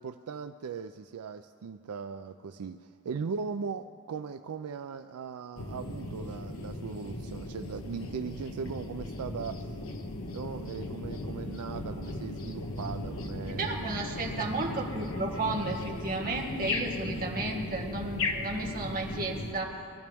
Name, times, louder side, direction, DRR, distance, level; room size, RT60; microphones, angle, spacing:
voice 1, 0.0-9.8 10.3-13.8, right 5 dB, 80° right, 9 dB, 0.4 m, -39 dB
sound 1, 5.6-19.5, left 2 dB, 70° left, 1.2 m, -37 dB
voice 2, 13.5-19.8, right 2 dB, 40° right, -1 dB, 1.9 m, -33 dB
22.5 x 13.0 x 3.5 m, 2.5 s
head